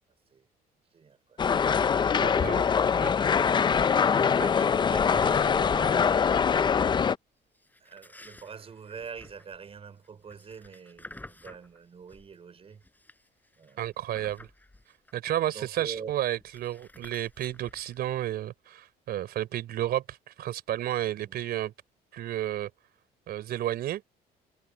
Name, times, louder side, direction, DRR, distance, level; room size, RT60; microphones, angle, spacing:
voice 1, 0.9-1.4 1.7-2.2 2.8-3.1 3.5-3.9 4.1-6.5 7.8-12.8 13.6-13.8 15.5-16.1 21.2-21.4, right 6 dB, 35° right, 5.0 m, -44 dB
sound 1, 1.4-7.2, left 6 dB, 25° left, 0.5 m, -23 dB
voice 2, 2.1-2.7 3.0-3.1 3.6-3.7 13.8-14.5 15.1-21.7 22.1-22.7 23.3-24.0, right 12 dB, 65° right, 3.8 m, -32 dB
sound 2, 2.3-3.1 3.3-3.6 4.1-5.9 7.5-12.3 12.7-15.4 15.7-15.8 16.0-18.0, left 2 dB, 10° left, 4.7 m, -52 dB
cardioid pair, 110°, 17 cm